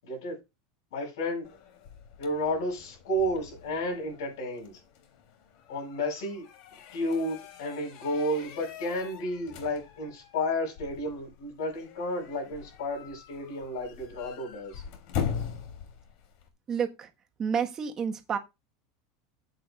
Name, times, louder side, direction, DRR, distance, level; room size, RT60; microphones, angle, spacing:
voice 1, 0.0-0.4 0.9-1.5 2.2-4.7 5.7-6.4 6.9-14.8, left 1 dB, 80° left, 7.5 m, -32 dB
sound 1, 1.4-16.5, left 7 dB, 55° left, 3.5 m, -42 dB
voice 2, 16.7-17.1 17.4-18.4, right 7 dB, 30° right, 1.6 m, -29 dB
16.0 x 8.4 x 2.5 m
supercardioid pair, 130°, 2 cm